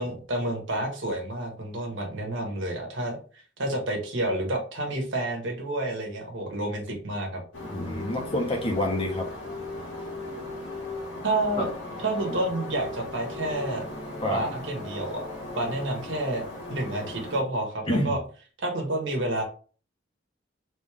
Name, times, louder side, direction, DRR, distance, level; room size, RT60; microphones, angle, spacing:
voice 1, 0.0-7.4 11.2-11.7 12.0-13.8 14.3-15.3 15.5-16.4 16.7-18.2 18.6-19.4, right 1 dB, 70° right, 2 dB, 1.4 m, -29 dB
sound 1, 7.5-17.4, left 2 dB, 80° left, 1.9 m, -37 dB
voice 2, 7.7-9.3 11.6-11.7 12.3-12.4 14.2-14.4 17.9-18.2, left 1 dB, 30° left, 1 dB, 1.2 m, -27 dB
3.7 x 3.5 x 3.6 m, 0.40 s
head